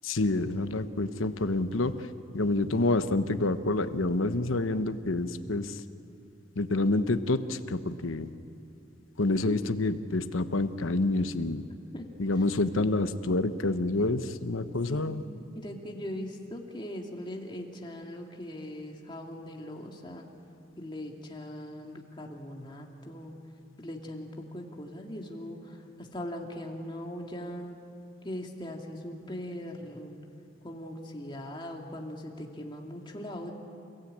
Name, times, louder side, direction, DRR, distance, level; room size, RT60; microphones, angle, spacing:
voice 1, 0.0-2.1 2.3-5.8 6.6-8.3 9.2-11.6 12.2-15.2, left 2 dB, 85° left, 10 dB, 1.0 m, -28 dB
voice 2, 15.5-20.2 20.8-23.3 23.8-27.8 28.2-30.2 30.6-33.5, left 1 dB, 25° left, 1 dB, 2.2 m, -40 dB
29.0 x 16.5 x 8.7 m, 2.7 s
head